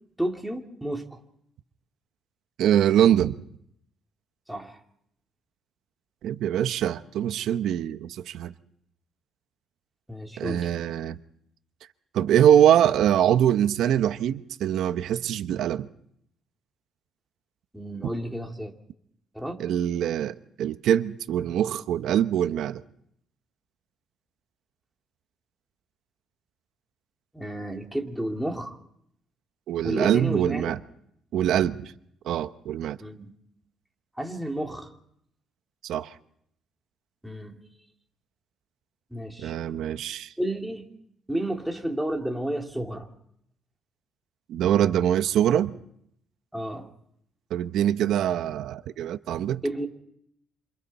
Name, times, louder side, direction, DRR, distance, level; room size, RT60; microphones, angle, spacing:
voice 1, 0.2-1.2 4.5-4.8 10.1-10.7 17.7-18.7 19.3-19.6 27.3-28.8 29.8-30.7 33.0-33.3 34.1-34.9 37.2-37.6 39.1-39.5 40.4-40.9 41.3-43.1 46.5-46.9 49.6-49.9, right 1 dB, ahead, 2.6 m, -31 dB
voice 2, 2.6-3.4 6.2-8.5 10.4-11.2 12.1-15.9 19.6-22.8 29.7-30.8 31.3-31.9 32.2-33.0 35.8-36.1 39.4-40.3 44.5-45.8 47.5-49.6, right 10 dB, 75° right, 0.9 m, -23 dB
28.0 x 27.0 x 4.2 m
cardioid pair, 115°, 0 cm